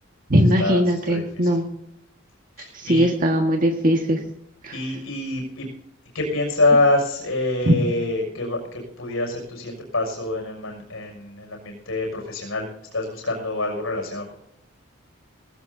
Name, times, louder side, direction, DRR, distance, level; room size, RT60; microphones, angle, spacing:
voice 1, 0.3-1.6 2.7-4.2 4.6-4.8 7.7-7.8, equal, 45° right, 1 dB, 1.8 m, -19 dB
voice 2, 1.1-1.5 2.6-3.1 4.7-5.7 6.1-12.7 12.9-14.3, left 2 dB, 90° left, 1 dB, 6.3 m, -25 dB
19.5 x 17.5 x 2.8 m, 0.81 s
head